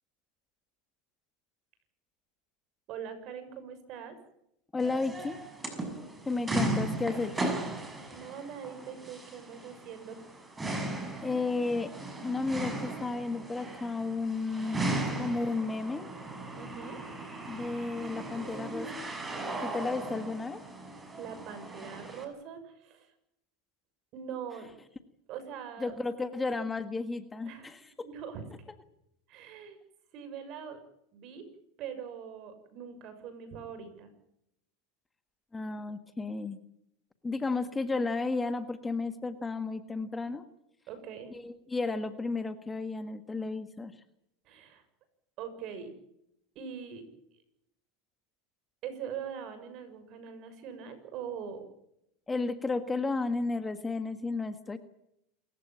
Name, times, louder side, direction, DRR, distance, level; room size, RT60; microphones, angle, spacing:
voice 1, 2.9-4.2 6.3-6.5 8.1-10.2 16.5-17.0 19.2-19.3 21.2-23.1 24.1-24.7 25.3-26.0 27.5-27.7 28.0-28.4 29.3-29.8 30.1-30.8 31.1-31.4 31.8-34.1 40.9-41.3 44.4-44.8 45.4-45.9 46.5-47.0 48.8-51.6, right 7 dB, 50° right, 10 dB, 6.7 m, -42 dB
voice 2, 4.7-5.4 6.3-7.6 11.2-11.9 12.2-14.8 15.2-16.1 17.5-18.9 19.6-20.6 25.8-28.1 35.5-36.6 37.2-40.4 41.3-43.9 52.3-54.8, left 3 dB, 15° left, 10 dB, 1.6 m, -33 dB
sound 1, 4.8-22.2, right 2 dB, 15° right, 6.2 m, -37 dB
28.0 x 15.5 x 9.0 m, 0.79 s
supercardioid pair, 125°, 0 cm